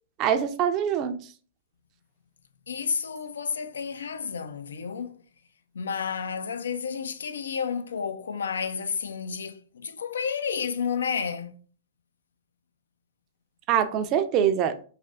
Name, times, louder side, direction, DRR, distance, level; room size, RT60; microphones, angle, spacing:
voice 1, 0.2-1.2 13.7-14.7, right 9 dB, 35° right, 0.4 m, -24 dB
voice 2, 2.7-5.2 5.7-11.6, left 6 dB, 80° left, 0.3 m, -31 dB
3.3 x 2.6 x 2.4 m
hypercardioid pair, 115°, 0 cm